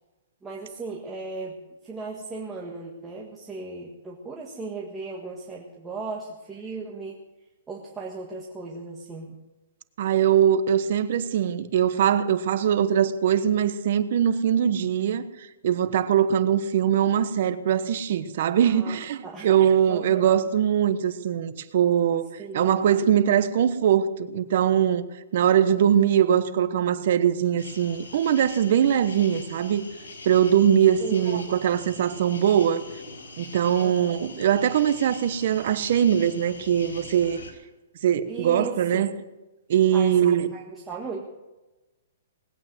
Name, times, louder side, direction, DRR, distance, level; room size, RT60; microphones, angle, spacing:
voice 1, 0.4-1.6 1.8-7.2 7.7-9.4 18.6-19.5 19.9-20.3 22.4-22.9 31.0-31.5 33.8-34.1 38.3-39.1 39.9-41.3, right 3 dB, 10° right, 1.5 m, -36 dB
voice 2, 10.0-22.3 22.5-25.1 25.3-29.9 30.2-32.8 33.4-37.4 38.0-39.1 39.7-40.5, right 9 dB, 55° right, 1.1 m, -22 dB
sound 1, 27.6-37.5, left 3 dB, 85° left, 4.6 m, -43 dB
19.5 x 8.7 x 7.7 m
hypercardioid pair, 160°, 0 cm